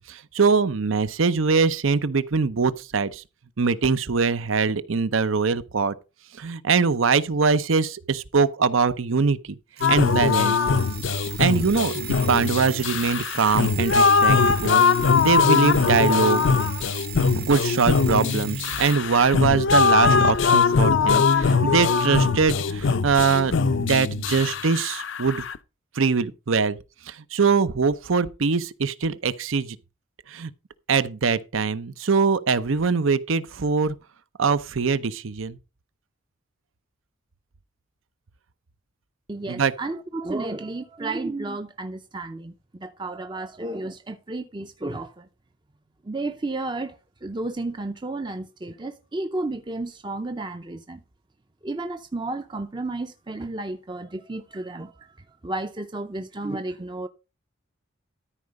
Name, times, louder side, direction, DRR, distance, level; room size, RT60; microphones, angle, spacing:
voice 1, 0.0-3.2 3.6-5.9 6.4-9.6 9.9-10.5 11.4-14.8 15.2-16.5 17.3-25.4 25.9-26.8 27.1-29.8 30.3-30.5 30.9-34.0 34.4-35.6 39.5-39.7, right 5 dB, 75° right, 0.7 m, -22 dB
sound 1, 9.8-25.6, left 5 dB, 65° left, 0.5 m, -21 dB
Alarm, 9.8-19.0, right 12 dB, 50° right, 0.9 m, -38 dB
voice 2, 39.3-45.3 46.0-51.0 51.6-55.2 55.4-57.1, right 2 dB, 20° right, 0.5 m, -32 dB
13.0 x 4.8 x 5.2 m
head